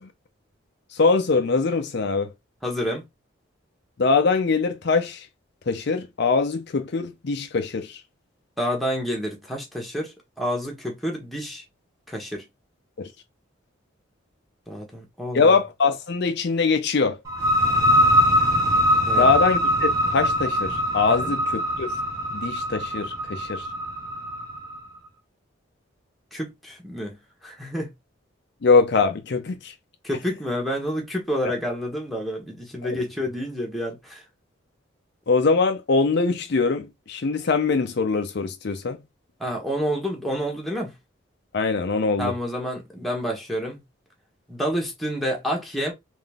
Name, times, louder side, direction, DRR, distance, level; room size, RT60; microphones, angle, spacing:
voice 1, 0.9-2.3 4.0-5.3 5.7-8.0 13.0-13.1 15.3-17.2 19.1-21.9 22.3-23.7 28.6-29.7 32.8-33.0 35.3-39.0 41.5-42.3, left 4 dB, 55° left, 0.5 m, -22 dB
voice 2, 2.6-3.0 8.6-11.6 12.1-12.4 14.7-15.6 19.1-19.3 21.1-21.3 26.3-27.2 27.4-27.9 30.0-34.2 39.4-40.9 42.2-43.8 44.5-45.9, equal, ahead, 1.2 m, -29 dB
sound 1, 17.2-24.7, equal, 15° right, 1.2 m, -22 dB
3.8 x 2.6 x 3.5 m
head